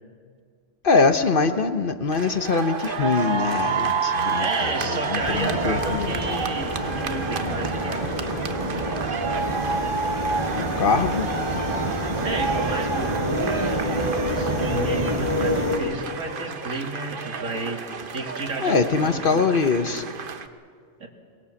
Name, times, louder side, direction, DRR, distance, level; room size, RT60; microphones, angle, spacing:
voice 1, 0.8-6.2 10.6-11.3 18.6-20.1, left 4 dB, 45° left, 8 dB, 1.1 m, -23 dB
sound 1, 2.1-20.5, right 5 dB, 45° right, 1.0 m, -30 dB
voice 2, 4.4-8.4 12.2-13.9 14.3-17.8 18.1-19.5 21.0-21.1, right 2 dB, 85° right, 2 dB, 2.6 m, -32 dB
sound 2, 5.2-15.8, equal, 25° right, 4.5 m, -27 dB
23.5 x 21.0 x 7.1 m, 2.1 s
omnidirectional pair, 1.3 m